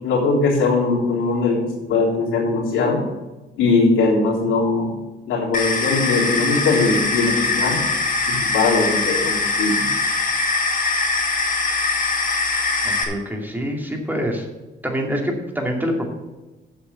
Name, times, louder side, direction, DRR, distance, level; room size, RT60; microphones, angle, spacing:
voice 1, 0.0-1.6 1.9-3.0 3.6-4.9 5.2-7.8 8.3-9.8, left 3 dB, 90° left, -4 dB, 3.5 m, -20 dB
sound 1, 5.5-13.0, left 3 dB, 40° left, 2.2 m, -22 dB
voice 2, 12.8-14.5 14.8-16.1, equal, 10° right, 1 dB, 2.4 m, -25 dB
8.2 x 6.3 x 8.1 m, 1.1 s
cardioid pair, 90°, 20 cm